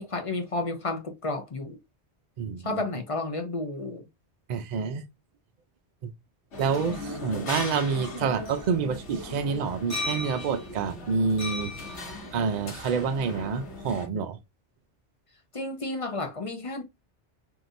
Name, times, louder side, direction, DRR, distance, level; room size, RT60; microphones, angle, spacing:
voice 1, 0.0-1.8 2.6-4.1 15.5-16.8, left 2 dB, 35° left, 0.6 m, -31 dB
voice 2, 2.4-2.8 4.5-5.0 6.0-6.1 6.6-11.7 12.3-14.4, right 5 dB, 55° right, 0.5 m, -28 dB
sound 1, 6.5-14.1, left 2 dB, 85° left, 1.3 m, -37 dB
3.6 x 2.7 x 2.5 m
omnidirectional pair, 1.1 m